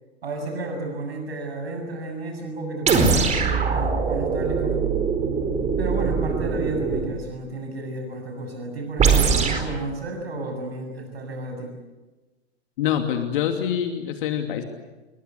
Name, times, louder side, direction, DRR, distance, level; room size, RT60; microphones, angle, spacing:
voice 1, 0.2-4.8 5.8-11.7, right 2 dB, 70° right, 4 dB, 7.2 m, -32 dB
sound 1, 2.9-7.2 9.0-9.7, right 5 dB, 20° right, 4.6 m, -22 dB
voice 2, 12.8-14.6, left 9 dB, 55° left, 5 dB, 2.8 m, -25 dB
29.0 x 22.5 x 8.2 m, 1.2 s
figure-of-eight pair, 105°, 32 cm